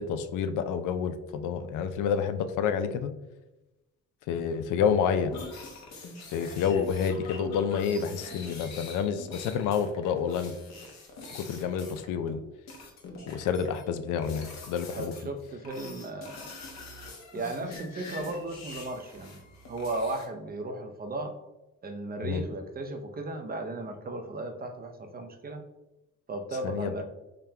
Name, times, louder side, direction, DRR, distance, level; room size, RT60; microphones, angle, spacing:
voice 1, 0.0-3.1 4.3-5.3 6.3-10.6 11.3-12.4 13.3-15.1 22.2-22.4 26.6-26.9, left 7 dB, 85° left, 10 dB, 0.4 m, -29 dB
sound 1, 5.3-12.4 12.7-13.8 14.2-15.3 15.6-20.3, left 3 dB, 60° left, 1.0 m, -44 dB
voice 2, 14.9-16.5 17.3-19.4 19.7-21.4 21.8-25.6 26.3-27.0, right 2 dB, 30° right, 5 dB, 0.6 m, -35 dB
3.7 x 3.3 x 2.8 m, 1.0 s
cardioid pair, 90°, 30 cm